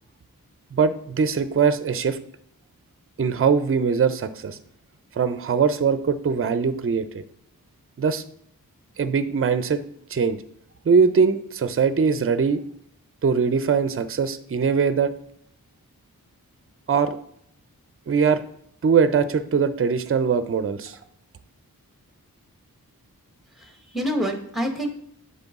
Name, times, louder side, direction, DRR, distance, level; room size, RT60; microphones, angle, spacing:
voice 1, 0.7-2.2 3.2-4.6 5.2-7.2 8.0-8.2 9.0-9.8 10.1-10.4 10.9-12.6 13.2-15.1 16.9-17.2 18.1-18.4 18.8-21.0, right 6 dB, 40° right, 12 dB, 0.4 m, -21 dB
voice 2, 23.5-24.9, equal, ahead, 5 dB, 1.1 m, -27 dB
6.8 x 4.3 x 3.6 m, 0.69 s
wide cardioid pair, 45°, 36 cm